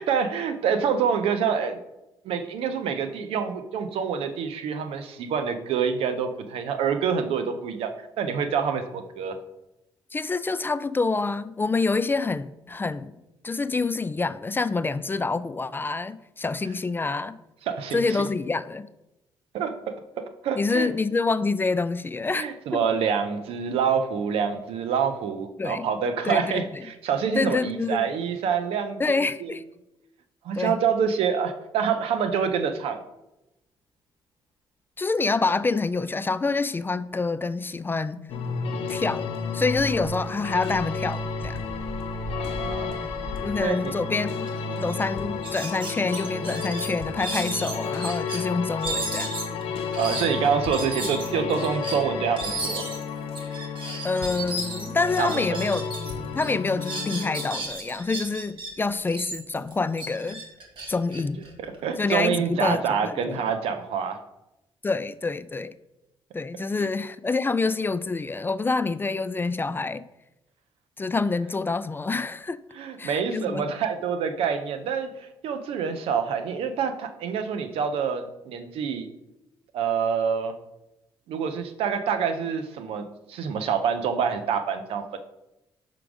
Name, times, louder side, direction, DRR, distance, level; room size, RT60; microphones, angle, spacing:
voice 1, 0.0-1.8 2.2-9.3 17.7-18.2 19.5-20.9 22.3-29.6 30.4-33.0 42.3-43.0 43.6-43.9 44.6-44.9 50.0-52.9 55.2-55.6 61.6-64.2 66.8-66.9 72.7-79.1 79.7-80.5 81.3-85.2, right 7 dB, 85° right, 0.6 m, -27 dB
voice 2, 10.1-13.2 13.4-17.4 17.9-18.9 20.6-22.5 25.6-25.9 26.2-26.8 27.4-28.1 29.0-29.6 30.6-30.7 35.0-38.3 38.9-41.6 43.4-44.5 44.8-49.3 54.0-55.9 56.3-60.4 60.9-61.4 62.0-63.4 64.8-65.7 66.3-70.0 71.0-72.6 73.0-73.6, left 3 dB, 20° left, 0.3 m, -27 dB
sound 1, 38.3-57.5, left 5 dB, 80° left, 0.7 m, -32 dB
sound 2, 41.4-43.7, equal, 40° right, 1.4 m, -40 dB
sound 3, 44.5-44.6 44.9-45.0 45.4-48.4 48.8-56.1 56.4-58.7 59.1-62.0, right 2 dB, 60° right, 1.5 m, -34 dB
5.9 x 3.8 x 4.8 m
cardioid pair, 70°, 10 cm